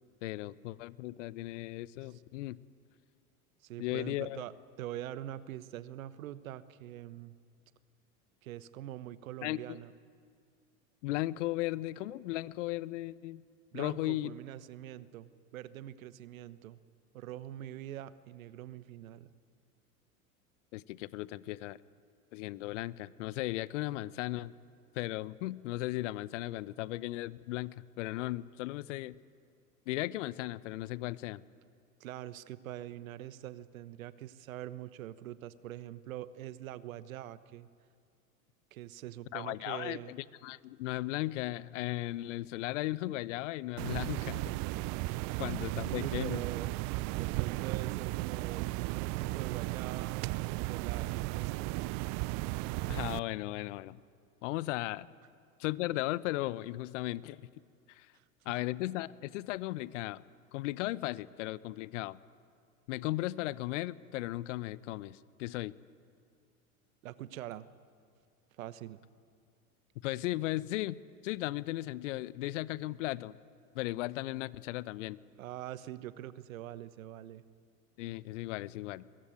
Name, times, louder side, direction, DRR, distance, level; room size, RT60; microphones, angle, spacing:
voice 1, 0.2-2.6 3.8-4.4 9.4-9.8 11.0-13.4 13.7-14.3 20.7-21.8 22.3-24.5 24.9-29.1 29.9-31.4 39.3-44.6 45.4-46.4 52.9-54.0 54.4-55.1 55.6-57.4 57.9-58.1 58.4-60.2 60.5-62.2 62.9-65.7 70.0-71.0 71.2-73.3 73.7-75.2 78.0-79.1, left 17 dB, 55° left, 19 dB, 0.9 m, -36 dB
voice 2, 3.6-7.3 8.4-9.9 13.7-16.8 17.1-19.3 32.0-37.7 38.7-40.1 45.3-45.4 45.9-46.7 47.1-50.3 50.6-51.8 58.1-58.6 67.0-67.7 68.6-69.0 75.4-77.4, right 13 dB, 65° right, 15 dB, 1.2 m, -44 dB
sound 1, 43.8-53.2, right 21 dB, 40° right, 0.6 m, -35 dB
22.0 x 22.0 x 9.3 m, 2.2 s
hypercardioid pair, 85°, 43 cm